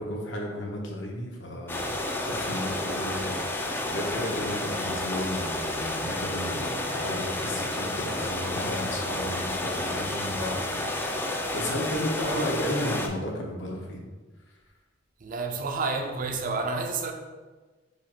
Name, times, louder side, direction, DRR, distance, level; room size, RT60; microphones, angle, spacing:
voice 1, 0.0-2.0 2.3-14.0, left 1 dB, 70° left, 1.0 m, -33 dB
sound 1, 1.7-13.1, left 1 dB, 10° left, 0.3 m, -31 dB
voice 2, 15.2-17.1, right 3 dB, 45° right, 0.5 m, -30 dB
4.9 x 2.5 x 4.2 m
head